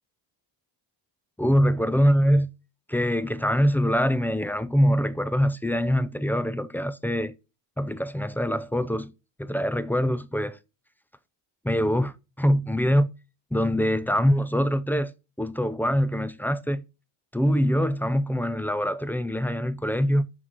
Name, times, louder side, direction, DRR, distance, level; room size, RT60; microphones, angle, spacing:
voice 1, 1.4-2.5 2.9-7.4 7.8-9.1 9.4-10.6 11.6-13.1 13.5-15.1 15.4-16.8 17.3-20.3, equal, 5° left, 0.5 m, -24 dB
6.0 x 4.7 x 5.1 m
cardioid pair, 80°, 49 cm